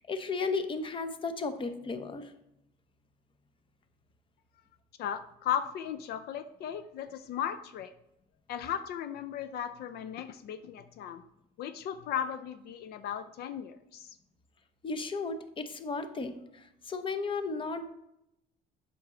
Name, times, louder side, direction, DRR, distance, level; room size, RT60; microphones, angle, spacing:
voice 1, 0.1-2.3 14.8-17.9, left 4 dB, 30° left, 0.8 m, -34 dB
voice 2, 5.0-7.9 8.5-11.2 11.6-14.2, left 9 dB, 70° left, 0.5 m, -36 dB
7.9 x 6.0 x 3.7 m
cardioid pair, 110°, 17 cm